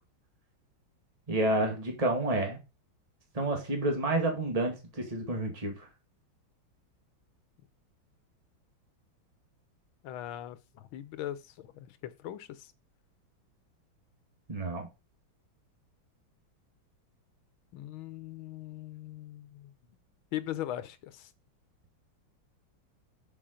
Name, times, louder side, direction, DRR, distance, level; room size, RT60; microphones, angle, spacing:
voice 1, 1.3-2.6 3.3-5.9 14.5-14.9, right 2 dB, 20° right, 2.0 m, -29 dB
voice 2, 10.0-12.7 17.7-19.7 20.3-21.3, left 12 dB, 85° left, 1.7 m, -40 dB
7.0 x 5.4 x 5.0 m
omnidirectional pair, 2.2 m